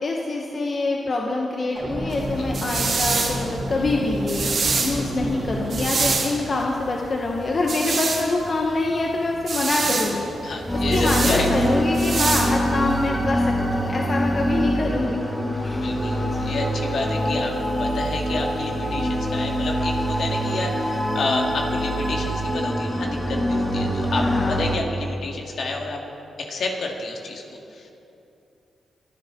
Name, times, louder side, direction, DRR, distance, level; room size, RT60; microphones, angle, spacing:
voice 1, 0.0-15.2 15.6-15.9 16.3-16.5 24.2-24.6, left 2 dB, 50° left, -1 dB, 1.3 m, -25 dB
sound 1, 1.8-6.1, equal, 40° right, 3.3 m, -30 dB
sound 2, 2.1-13.1, right 4 dB, 60° right, 2.0 m, -27 dB
voice 2, 10.4-11.7 15.8-26.0 26.4-27.9, left 3 dB, 70° left, 0 dB, 2.1 m, -29 dB
sound 3, 10.7-24.8, equal, 15° left, 2.7 m, -24 dB
24.0 x 10.0 x 3.9 m, 2.8 s
cardioid pair, 60°, 0 cm